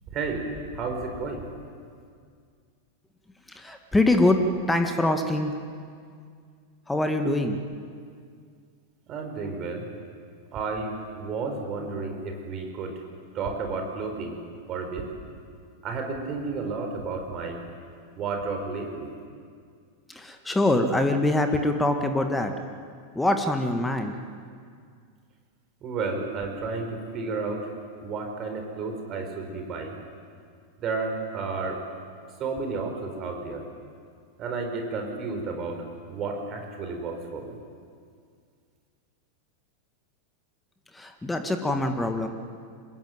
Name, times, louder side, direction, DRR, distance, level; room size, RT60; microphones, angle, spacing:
voice 1, 0.1-0.5 0.7-1.5 9.1-9.9 10.5-13.0 13.3-14.4 14.7-15.0 15.8-17.6 18.1-19.1 25.8-27.7 28.0-30.0 30.8-31.8 32.4-33.6 34.4-37.6, right 4 dB, 30° right, 4 dB, 4.5 m, -32 dB
voice 2, 3.5-5.5 6.9-7.6 20.1-22.5 23.2-24.2 40.9-42.3, left 1 dB, 10° left, 6 dB, 1.9 m, -24 dB
26.0 x 21.5 x 9.2 m, 2.1 s
figure-of-eight pair, 90°, 0 cm